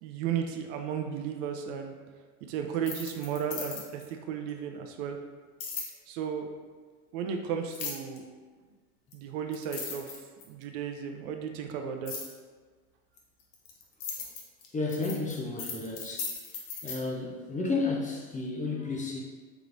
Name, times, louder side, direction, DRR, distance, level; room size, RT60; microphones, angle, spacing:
voice 1, 0.0-2.0 2.5-5.2 6.1-6.5 7.1-8.2 9.1-10.2 10.5-12.1, right 7 dB, 55° right, 4 dB, 0.5 m, -34 dB
sound 1, 2.7-4.1 5.6-5.9 7.7-8.2 9.1-9.2 9.5-10.6 12.1-12.3 13.2-17.0, left 5 dB, 65° left, 1.0 m, -37 dB
voice 2, 14.7-16.4 16.8-19.2, left 3 dB, 20° left, -1 dB, 0.6 m, -32 dB
4.7 x 3.2 x 2.6 m, 1.5 s
hypercardioid pair, 90°, 43 cm